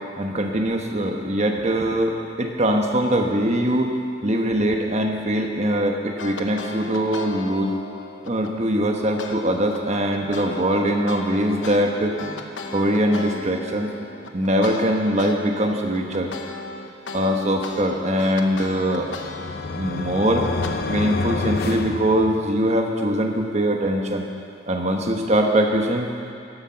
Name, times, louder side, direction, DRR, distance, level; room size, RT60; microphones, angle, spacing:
voice 1, 0.2-3.9 4.2-7.8 8.2-12.4 12.7-13.9 14.3-16.3 17.1-19.1 19.7-20.5 20.9-24.2 24.7-26.1, equal, 35° right, 3 dB, 1.2 m, -22 dB
sound 1, 6.2-8.5 9.2-9.4 9.7-15.4 15.7-20.7, left 3 dB, 75° left, 1.0 m, -36 dB
sound 2, 18.4-22.8, left 3 dB, 55° left, 0.7 m, -29 dB
14.0 x 11.0 x 5.8 m, 2.4 s
head